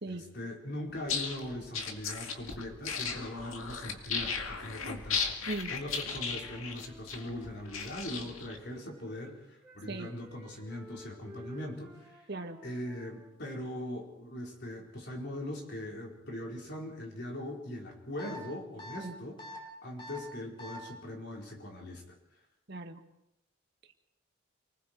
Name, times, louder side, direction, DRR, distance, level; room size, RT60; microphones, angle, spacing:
voice 1, 0.1-12.2 12.6-19.4 19.8-22.2, left 1 dB, 50° left, 0 dB, 4.4 m, -41 dB
sound 1, 1.0-8.6, left 5 dB, 75° left, 2.2 m, -36 dB
Wind instrument woodwind instrument, 5.6-9.3 9.6-14.0, equal, 5° right, 6.8 m, -55 dB
sound 2, 18.2-18.4 18.8-19.0 19.4-19.6 20.0-20.2 20.6-20.8, left 2 dB, 25° left, 3.4 m, -44 dB
voice 2, 22.7-23.0, right 2 dB, 50° right, 6 dB, 1.7 m, -38 dB
29.0 x 20.0 x 4.6 m, 0.82 s
head